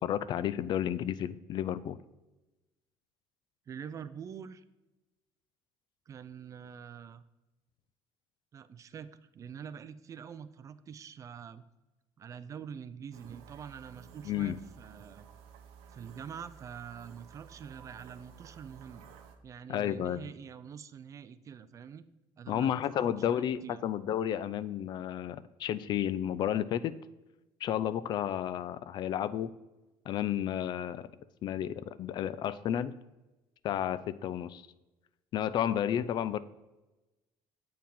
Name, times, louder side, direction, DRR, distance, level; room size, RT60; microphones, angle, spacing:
voice 1, 0.0-2.0 14.2-14.6 19.7-20.2 22.5-26.9 27.6-29.5 30.1-31.1 31.4-32.9 33.6-34.6 35.3-36.4, left 10 dB, 45° left, 16 dB, 0.3 m, -32 dB
voice 2, 3.7-4.6 6.1-7.2 8.5-11.6 12.2-15.3 15.9-19.0 19.4-22.0 22.4-23.8, right 7 dB, 30° right, 14 dB, 0.4 m, -45 dB
sound 1, 13.1-19.4, right 7 dB, 80° right, 0.9 m, -54 dB
7.5 x 4.7 x 5.4 m, 1.1 s
cardioid pair, 135°, 10 cm